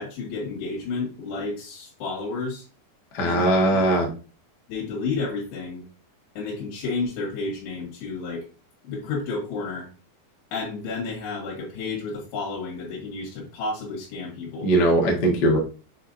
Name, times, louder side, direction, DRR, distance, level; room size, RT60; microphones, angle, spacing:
voice 1, 0.0-2.6 3.2-4.0 4.7-5.9 6.4-8.5 8.8-9.9 10.5-14.7, left 4 dB, 85° left, -2 dB, 4.2 m, -31 dB
voice 2, 3.1-4.1 14.6-15.6, right 1 dB, 65° left, 0 dB, 1.0 m, -20 dB
8.2 x 4.4 x 2.7 m, 0.35 s
omnidirectional pair, 4.7 m